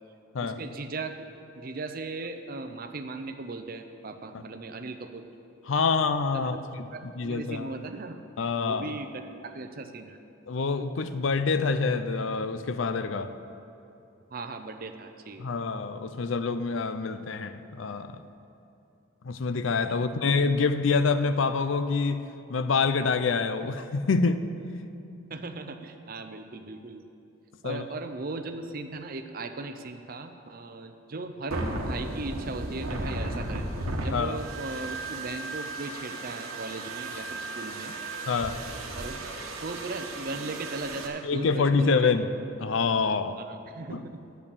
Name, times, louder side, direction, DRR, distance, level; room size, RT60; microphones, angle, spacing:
voice 1, 0.4-1.3 1.6-5.2 6.3-6.6 6.9-8.2 8.6-10.2 14.3-15.5 25.3-27.0 27.6-33.7 34.0-38.0 38.9-39.3 39.6-42.2 43.3-44.2, right 3 dB, 45° right, 7 dB, 0.6 m, -38 dB
voice 2, 5.7-6.9 7.2-7.7 8.4-9.0 10.5-13.3 15.4-18.2 19.2-24.4 27.6-27.8 34.1-34.4 38.3-38.6 41.2-42.3 42.6-43.4 43.9-44.0, left 4 dB, 65° left, 11 dB, 0.5 m, -26 dB
sound 1, 31.5-41.1, right 2 dB, 85° right, 1.2 m, -35 dB
8.6 x 6.9 x 8.4 m, 2.8 s
head